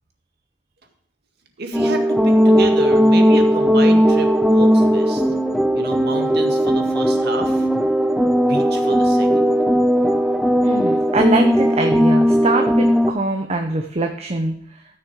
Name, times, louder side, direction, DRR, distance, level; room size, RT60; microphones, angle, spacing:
voice 1, 1.6-5.2 5.7-7.7 8.4-9.5, right 2 dB, 60° right, 4 dB, 1.9 m, -30 dB
sound 1, 1.7-13.1, equal, ahead, 0.4 m, -17 dB
voice 2, 10.6-14.5, right 2 dB, 35° right, 4 dB, 0.9 m, -23 dB
14.0 x 6.5 x 4.8 m, 0.67 s
head